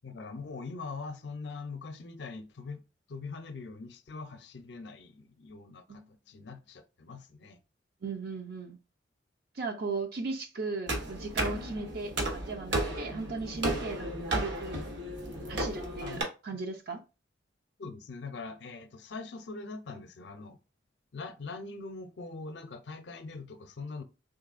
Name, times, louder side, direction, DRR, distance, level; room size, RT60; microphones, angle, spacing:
voice 1, 0.0-2.8 3.1-7.6 16.0-16.2 16.5-16.6 17.8-20.6 21.1-24.0, left 4 dB, 65° left, 0.5 m, -42 dB
voice 2, 8.0-8.8 9.6-14.8 15.5-17.0, right 3 dB, 55° right, 0.5 m, -37 dB
sound 1, 10.9-16.2, right 1 dB, 70° right, 1.0 m, -34 dB
3.8 x 3.0 x 2.5 m
head